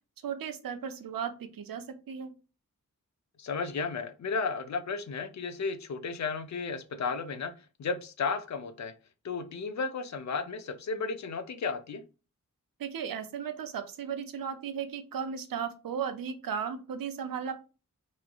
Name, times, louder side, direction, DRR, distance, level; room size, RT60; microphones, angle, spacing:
voice 1, 0.2-2.3 12.8-17.5, right 7 dB, 85° right, 9 dB, 0.5 m, -35 dB
voice 2, 3.4-7.5 7.8-8.9 9.2-12.0, left 4 dB, 55° left, 10 dB, 0.5 m, -33 dB
3.0 x 2.5 x 2.2 m, 0.32 s
wide cardioid pair, 95°, 33 cm